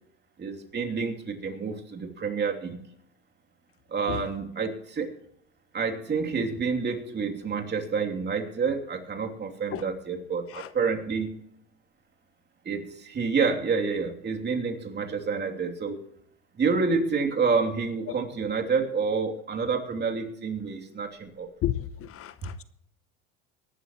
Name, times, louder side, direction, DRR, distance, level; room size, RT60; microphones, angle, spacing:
voice 1, 0.4-2.8 3.9-5.2 5.7-11.4 12.6-16.0 16.6-21.5, right 5 dB, 30° right, 2 dB, 3.0 m, -28 dB
voice 2, 21.6-22.6, left 12 dB, 45° left, 14 dB, 0.9 m, -32 dB
23.5 x 12.0 x 3.1 m, 0.72 s
supercardioid pair, 95°, 32 cm